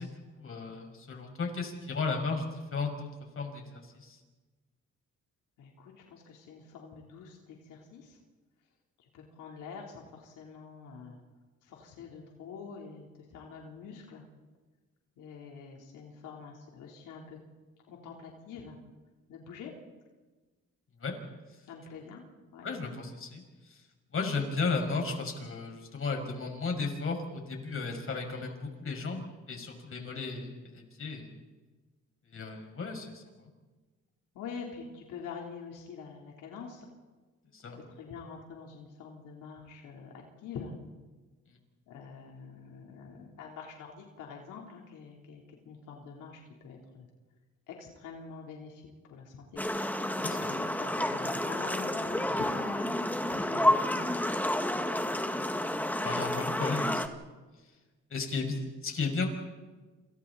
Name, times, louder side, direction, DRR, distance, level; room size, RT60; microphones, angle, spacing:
voice 1, 0.0-3.1 3.4-4.2 21.0-21.1 22.6-23.4 24.1-31.3 32.3-33.2 37.5-37.8 50.2-50.5 56.0-57.2 58.1-59.3, left 4 dB, 45° left, 3 dB, 6.0 m, -34 dB
voice 2, 5.6-8.2 9.1-11.2 11.6-14.2 15.2-17.4 17.9-18.8 19.3-19.7 21.7-22.2 22.5-22.7 34.3-36.8 37.7-40.8 41.9-47.1 47.7-49.6 50.2-52.9 53.3-54.2, left 6 dB, 90° left, 0 dB, 3.7 m, -45 dB
sound 1, 49.6-57.1, left 1 dB, 5° left, 1.9 m, -30 dB
29.0 x 28.0 x 4.2 m, 1.3 s
cardioid pair, 90°, 30 cm